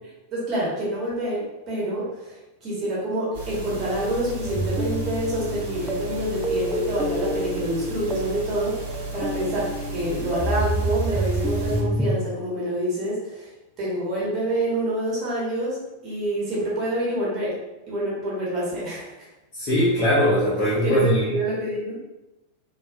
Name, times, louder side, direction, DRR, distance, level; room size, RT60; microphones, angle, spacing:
voice 1, 0.3-13.5 13.8-17.6 17.9-19.3 20.6-22.0, right 1 dB, 35° right, -6 dB, 1.4 m, -27 dB
sound 1, 3.3-11.8, right 2 dB, 55° right, 1.1 m, -35 dB
sound 2, 4.5-12.2, right 1 dB, 5° right, 0.4 m, -28 dB
voice 2, 19.5-21.2, equal, 40° left, -9 dB, 1.1 m, -20 dB
4.3 x 2.8 x 2.5 m, 0.98 s
figure-of-eight pair, 90°, 0 cm